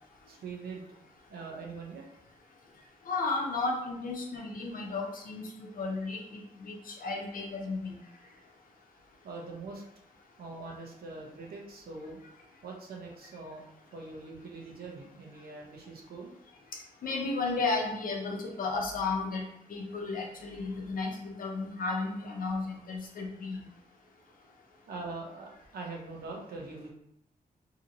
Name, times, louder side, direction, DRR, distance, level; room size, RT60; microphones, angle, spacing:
voice 1, 0.3-0.9 1.3-2.0 9.2-9.8 10.4-12.2 12.6-13.7 13.9-16.3 24.9-26.9, right 3 dB, 85° right, 0 dB, 0.7 m, -43 dB
voice 2, 3.1-8.0 17.0-23.6, left 3 dB, 65° left, 0 dB, 0.6 m, -33 dB
2.8 x 2.8 x 2.6 m, 0.78 s
wide cardioid pair, 150°, 15 cm